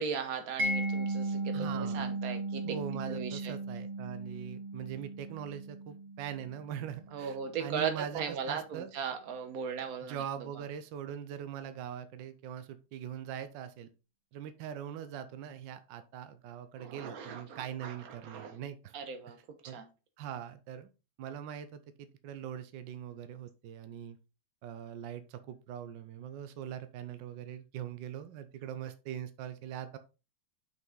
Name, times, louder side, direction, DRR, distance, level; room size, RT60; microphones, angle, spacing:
voice 1, 0.0-2.6 2.9-3.5 7.1-10.5 16.8-18.6 18.9-19.4 19.6-19.9, right 6 dB, 55° right, 8 dB, 1.4 m, -38 dB
Mallet percussion, 0.6-7.4, right 2 dB, 35° right, 1.0 m, -36 dB
voice 2, 1.5-2.1 2.6-8.9 10.0-13.9 14.3-18.9 19.6-19.8 20.2-20.9 21.2-24.2 24.6-30.0, right 9 dB, 80° right, 11 dB, 1.3 m, -42 dB
6.1 x 5.4 x 3.7 m, 0.31 s
omnidirectional pair, 2.0 m